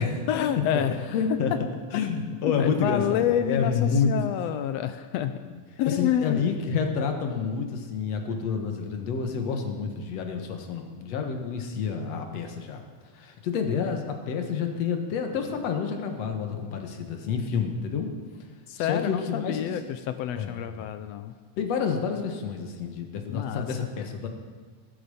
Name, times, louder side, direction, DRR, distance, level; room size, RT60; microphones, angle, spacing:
voice 1, 0.3-1.0 1.3-1.4 2.4-5.4 5.8-6.4 18.7-21.3 23.3-23.9, left 10 dB, 80° left, 10 dB, 1.5 m, -28 dB
voice 2, 1.1-1.5 1.9-4.1 5.9-12.8 13.2-18.1 18.8-19.7 20.4-20.8 21.6-24.3, left 6 dB, 65° left, 4 dB, 2.4 m, -29 dB
15.0 x 12.0 x 5.5 m, 1.5 s
omnidirectional pair, 3.4 m